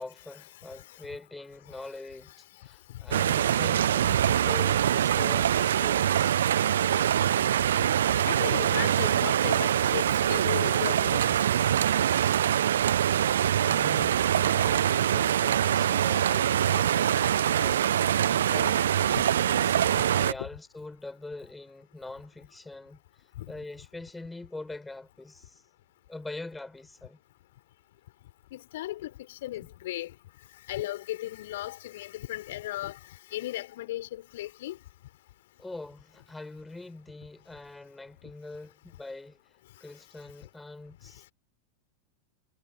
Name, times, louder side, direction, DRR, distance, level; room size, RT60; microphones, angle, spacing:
voice 1, 0.0-6.4 13.5-17.9 18.3-25.6 26.1-27.2 29.6-29.7 35.6-39.4 39.8-41.3, left 2 dB, 5° left, 4.6 m, -43 dB
voice 2, 0.6-1.0 1.7-1.8 2.9-3.1 4.3-4.4 8.3-11.4 14.0-14.1 15.0-15.1 19.1-19.3 19.8-20.0 20.4-20.5 23.4-23.5 28.5-30.1 30.7-34.8, left 15 dB, 55° left, 4.2 m, -36 dB
sound 1, 3.1-20.3, right 10 dB, 65° right, 0.4 m, -24 dB
figure-of-eight pair, 90°, 0 cm